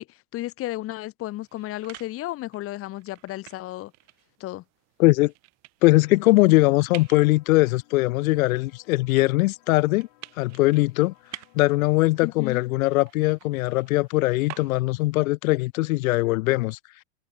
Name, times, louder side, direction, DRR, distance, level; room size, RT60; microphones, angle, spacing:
voice 1, 0.0-3.9 4.4-4.6 12.2-12.6, left 16 dB, 35° left, 1.2 m, -33 dB
sound 1, 1.2-15.2, right 23 dB, 40° right, 1.0 m, -49 dB
voice 2, 5.0-5.3 5.8-10.1 10.4-11.1 11.5-16.8, left 20 dB, 80° left, 0.6 m, -21 dB
sound 2, 6.0-12.0, left 31 dB, 60° left, 4.3 m, -60 dB
supercardioid pair, 140°, 41 cm